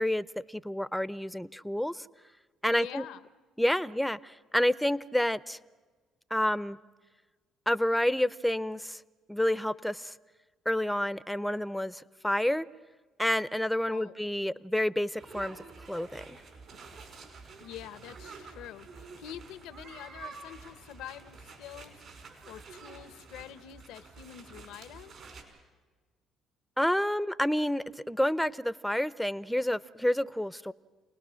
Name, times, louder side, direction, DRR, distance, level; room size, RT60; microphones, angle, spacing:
voice 1, 0.0-2.1 2.6-3.0 3.6-5.6 6.3-6.8 7.7-9.0 9.3-10.1 10.7-12.7 13.2-16.4 26.8-30.7, left 1 dB, 5° left, 17 dB, 0.6 m, -29 dB
voice 2, 2.7-3.2 13.9-14.3 17.6-25.1, left 11 dB, 80° left, 14 dB, 0.8 m, -46 dB
sound 1, 15.1-25.4, right 4 dB, 60° right, 5.5 m, -49 dB
29.5 x 19.5 x 6.3 m, 1.3 s
supercardioid pair, 70°, 0 cm